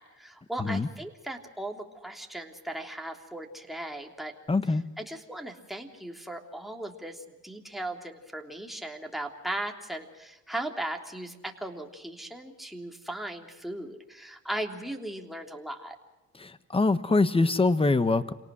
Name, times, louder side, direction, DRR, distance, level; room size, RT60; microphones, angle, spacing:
voice 1, 0.0-4.3 5.0-15.9, right 1 dB, ahead, 2 dB, 3.2 m, -37 dB
voice 2, 4.5-4.8 16.4-18.3, left 3 dB, 20° left, 13 dB, 1.3 m, -24 dB
28.0 x 18.5 x 6.3 m, 1.1 s
cardioid pair, 90°, 30 cm